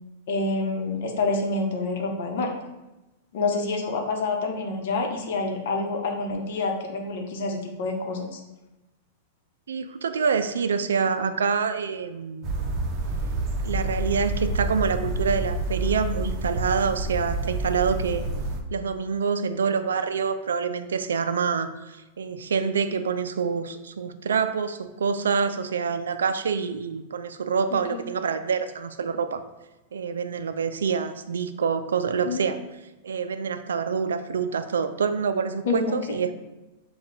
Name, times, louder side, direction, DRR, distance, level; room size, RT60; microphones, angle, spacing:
voice 1, 0.3-2.5 3.3-8.4 27.9-28.0 32.2-32.4 35.6-36.2, left 3 dB, 65° left, 2 dB, 0.8 m, -27 dB
voice 2, 9.7-12.5 13.6-18.2 18.7-29.4 29.9-32.6 33.0-36.3, right 6 dB, 85° right, 10 dB, 0.3 m, -26 dB
sound 1, 12.4-18.6, right 2 dB, 40° right, 0.7 m, -28 dB
5.5 x 2.3 x 3.9 m, 1.0 s
hypercardioid pair, 115°, 0 cm